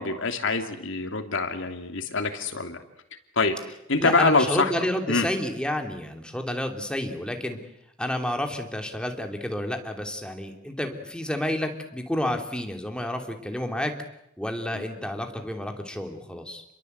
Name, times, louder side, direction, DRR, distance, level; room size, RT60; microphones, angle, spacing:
voice 1, 0.0-2.8 3.4-3.6 3.9-4.7 5.1-5.3 14.7-14.8, left 3 dB, 65° left, 5 dB, 3.0 m, -25 dB
voice 2, 4.0-7.6 8.0-13.9 14.4-16.6, left 1 dB, 5° left, 4 dB, 3.0 m, -30 dB
29.5 x 22.5 x 8.1 m, 0.79 s
head